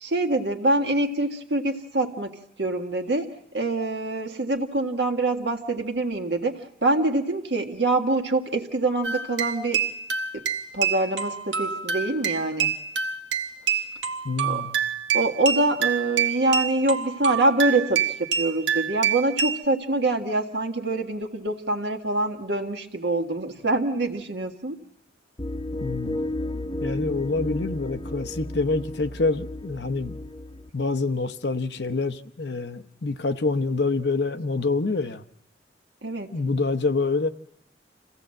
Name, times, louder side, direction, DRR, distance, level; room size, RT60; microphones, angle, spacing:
voice 1, 0.0-9.8 10.3-10.4 10.7-12.7 14.4-14.6 15.1-24.8 36.0-36.4, right 2 dB, 70° right, 1.7 m, -25 dB
sound 1, 9.0-19.6, right 7 dB, 85° right, 1.2 m, -27 dB
voice 2, 14.2-14.8 25.8-26.2 26.8-30.2 30.7-35.2 36.3-37.3, left 3 dB, 65° left, 0.8 m, -26 dB
sound 2, 25.4-30.7, left 1 dB, 25° left, 0.9 m, -33 dB
27.5 x 16.0 x 7.7 m
head